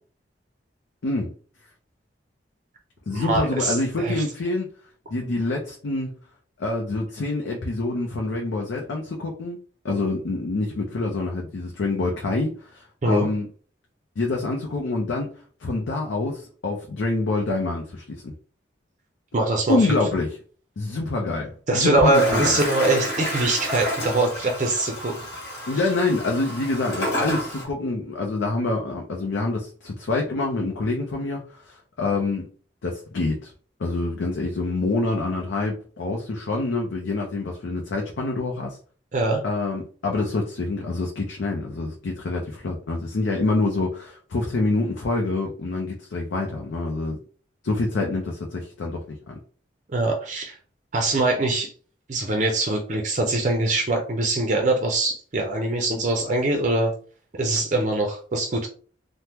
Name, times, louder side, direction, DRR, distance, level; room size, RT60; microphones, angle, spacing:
voice 1, 1.0-1.3 3.1-4.7 5.1-6.1 6.6-9.6 9.8-13.5 14.2-15.3 15.6-18.3 19.7-20.4 20.8-22.6 25.7-32.5 32.8-33.5 33.8-38.8 39.4-47.2 47.6-49.4, left 2 dB, 85° left, 0 dB, 0.5 m, -26 dB
voice 2, 3.1-4.2 13.0-13.3 19.3-20.0 21.7-25.1 39.1-39.4 49.9-50.6 50.9-51.7 52.1-56.9 57.4-58.7, right 2 dB, 40° right, 2 dB, 0.5 m, -23 dB
Toilet flush, 22.1-27.6, equal, 60° left, 1.3 m, -30 dB
3.4 x 2.1 x 2.9 m, 0.42 s
head